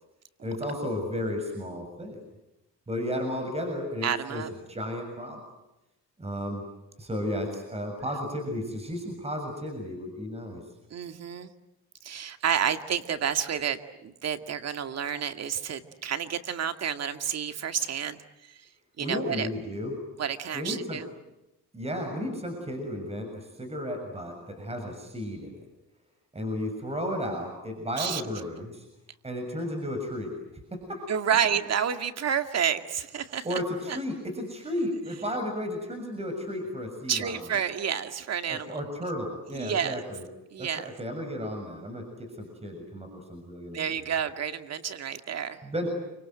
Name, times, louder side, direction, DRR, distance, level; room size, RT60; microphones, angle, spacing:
voice 1, 0.4-2.2 2.9-5.4 6.2-6.6 7.0-10.6 19.0-20.0 20.5-21.0 21.7-25.6 26.3-28.9 29.2-30.4 30.7-31.1 33.4-37.4 38.5-40.2 40.6-44.1 45.6-45.9, left 1 dB, 20° right, 4 dB, 7.0 m, -33 dB
voice 2, 4.0-4.5 10.9-11.5 12.0-18.7 19.0-19.5 20.2-21.0 28.0-28.2 31.1-33.6 33.9-34.0 37.1-38.8 39.5-40.0 40.5-40.9 43.7-45.6, right 8 dB, 60° right, 8 dB, 2.2 m, -30 dB
29.5 x 25.5 x 7.9 m, 0.92 s
cardioid pair, 90°, 30 cm